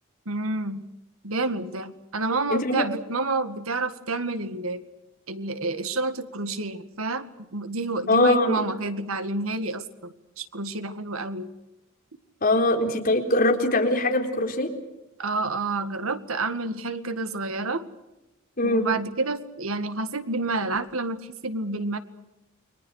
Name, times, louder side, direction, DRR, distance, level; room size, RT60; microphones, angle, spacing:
voice 1, 0.3-0.8 1.2-4.8 5.3-11.5 15.2-17.9 18.6-22.0, right 3 dB, 90° right, 10 dB, 2.0 m, -29 dB
voice 2, 2.5-2.8 8.1-8.6 12.4-14.7 18.6-18.9, left 2 dB, 45° left, 3 dB, 4.1 m, -22 dB
29.5 x 23.0 x 6.5 m, 0.96 s
head